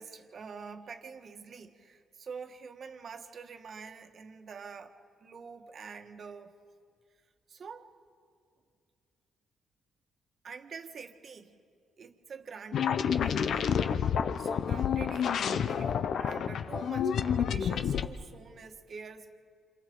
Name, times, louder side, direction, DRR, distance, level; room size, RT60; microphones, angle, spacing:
voice 1, 0.0-6.5 7.5-7.9 10.4-11.6 12.0-13.7 14.4-19.4, right 5 dB, 50° right, 6 dB, 1.4 m, -46 dB
sound 1, 12.7-18.1, left 7 dB, 65° left, 0.7 m, -29 dB
28.0 x 27.0 x 3.9 m, 2.2 s
cardioid pair, 90°, 0 cm